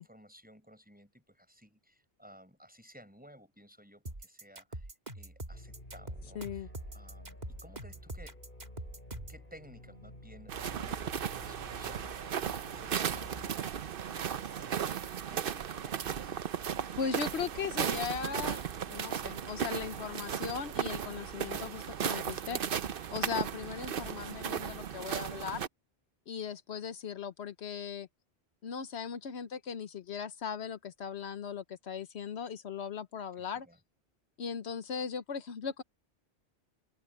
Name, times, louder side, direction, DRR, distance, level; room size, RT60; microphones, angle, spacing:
voice 1, 0.0-4.9 5.1-8.4 9.3-16.4 33.4-33.8, equal, 10° right, 6.2 m, -57 dB
sound 1, 4.1-9.4, right 1 dB, 40° right, 2.6 m, -43 dB
sound 2, 5.5-13.5, left 1 dB, 50° left, 6.2 m, -50 dB
voice 2, 6.3-6.7 17.0-25.6 26.3-28.1 28.6-33.7 34.4-35.8, left 7 dB, 80° left, 1.2 m, -38 dB
sound 3, 10.5-25.7, right 8 dB, 60° right, 0.9 m, -36 dB
omnidirectional pair, 1.1 m